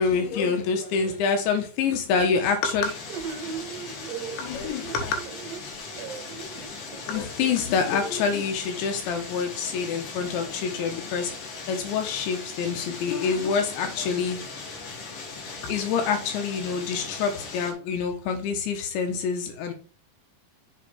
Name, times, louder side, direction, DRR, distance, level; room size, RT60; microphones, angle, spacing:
voice 1, 0.0-3.0 4.4-5.2 7.1-14.5 15.6-19.7, left 5 dB, 75° left, 5 dB, 3.5 m, -26 dB
sound 1, 2.8-17.7, left 4 dB, 55° left, 2.9 m, -39 dB
sound 2, 3.1-7.2, right 7 dB, 70° right, 3.1 m, -38 dB
7.2 x 4.9 x 4.9 m, 0.37 s
omnidirectional pair, 5.4 m